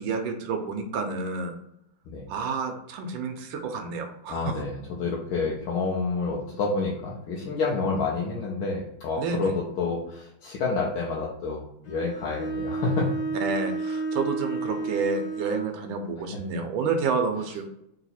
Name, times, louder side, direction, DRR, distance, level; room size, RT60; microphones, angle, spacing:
voice 1, 0.0-1.5 2.3-4.6 7.8-7.9 9.2-9.5 13.4-17.6, right 4 dB, 75° right, 4 dB, 1.3 m, -29 dB
voice 2, 4.3-13.1 16.3-16.4, left 4 dB, 75° left, -3 dB, 1.5 m, -29 dB
Bowed string instrument, 11.8-15.8, right 3 dB, 45° left, 0.9 m, -31 dB
4.0 x 2.8 x 4.1 m, 0.77 s
omnidirectional pair, 2.4 m